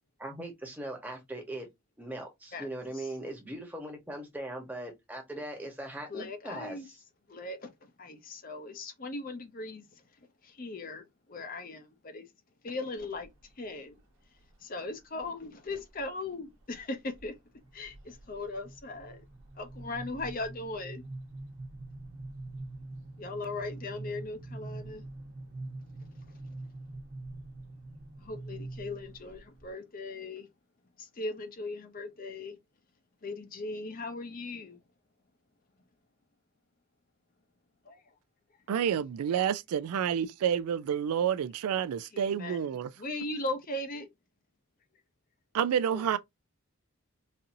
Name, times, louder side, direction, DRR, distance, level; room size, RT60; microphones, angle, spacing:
voice 1, 0.2-1.7 2.0-7.0, right 1 dB, 10° right, 0.9 m, -40 dB
voice 2, 6.1-6.9 7.3-7.7 8.0-9.8 10.6-11.0 11.3-12.2 12.6-13.3 13.6-13.9 14.6-17.3 17.7-19.2 19.6-21.0 23.2-25.0 28.2-30.5 31.2-32.5 33.2-34.8 37.9-38.0 42.1-44.1 45.9-46.2, left 2 dB, 40° left, 0.6 m, -38 dB
sound 1, 13.0-13.5 14.0-14.5 15.2-16.1 16.4-16.8 17.1-29.7, right 2 dB, 60° right, 1.1 m, -45 dB
voice 3, 38.7-42.9 45.5-46.2, right 8 dB, 90° right, 0.3 m, -29 dB
4.2 x 2.6 x 2.6 m
head